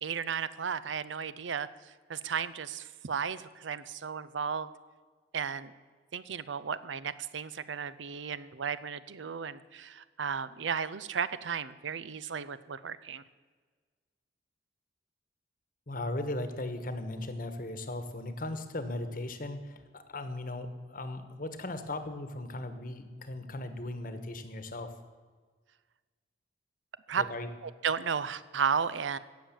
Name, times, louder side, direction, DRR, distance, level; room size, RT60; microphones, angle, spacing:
voice 1, 0.0-4.7 5.3-5.7 6.1-13.2 27.1-27.2 27.6-29.2, right 6 dB, 90° right, 15 dB, 0.6 m, -34 dB
voice 2, 15.9-24.9 27.2-27.5, left 2 dB, 50° left, 9 dB, 1.2 m, -37 dB
17.0 x 7.0 x 7.4 m, 1.5 s
head